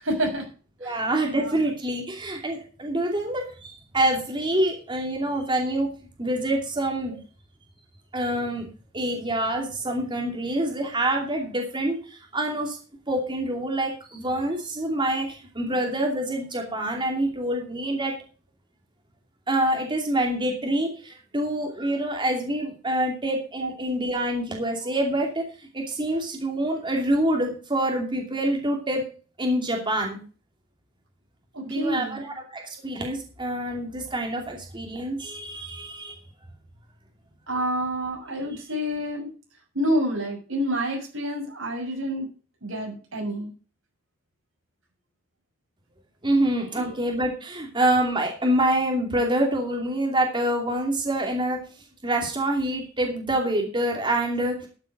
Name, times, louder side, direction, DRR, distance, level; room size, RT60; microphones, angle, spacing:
voice 1, 0.0-0.5 0.8-1.0 1.3-1.6 23.6-23.7 31.5-32.2 37.5-39.3 39.7-42.3 42.6-43.5 46.8-46.9, equal, 85° right, 1 dB, 6.5 m, -28 dB
voice 2, 0.8-5.9 6.2-7.1 8.1-8.7 8.9-12.8 13.1-18.1 19.5-29.0 29.4-30.2 31.6-36.2 46.2-51.6 52.0-54.7, right 1 dB, 25° right, 1 dB, 2.8 m, -26 dB
12.5 x 8.2 x 5.2 m, 0.37 s
head